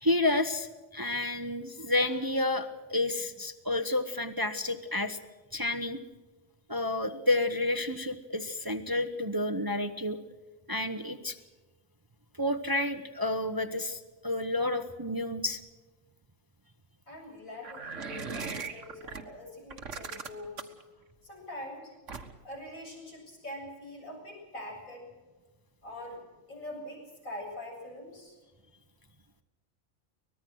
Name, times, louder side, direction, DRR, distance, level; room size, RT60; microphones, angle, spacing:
voice 1, 0.0-5.2 5.5-6.0 6.7-10.2 10.7-11.4 12.4-15.6, left 2 dB, 20° right, 8 dB, 0.9 m, -30 dB
voice 2, 17.1-20.7 21.2-21.9 22.4-25.1 25.8-26.2 26.5-28.4, left 1 dB, 85° left, -1 dB, 8.4 m, -43 dB
sound 1, 17.6-19.2 19.7-20.8 22.1-22.5, right 5 dB, 65° right, 1.9 m, -39 dB
24.5 x 19.5 x 6.3 m, 1.3 s
omnidirectional pair, 1.4 m